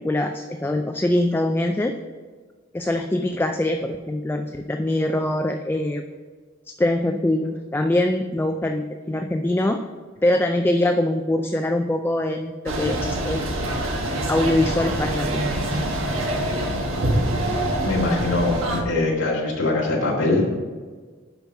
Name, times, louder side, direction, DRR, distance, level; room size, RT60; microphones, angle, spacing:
voice 1, 0.0-2.0 2.7-6.0 6.8-9.8 10.2-13.5 14.3-15.4 15.7-15.8, left 1 dB, 10° left, 5 dB, 0.3 m, -23 dB
sound 1, 12.7-18.8, right 1 dB, 80° right, 1.4 m, -25 dB
voice 2, 17.8-20.6, left 2 dB, 70° left, -4 dB, 1.9 m, -22 dB
7.0 x 5.6 x 6.1 m, 1.5 s
head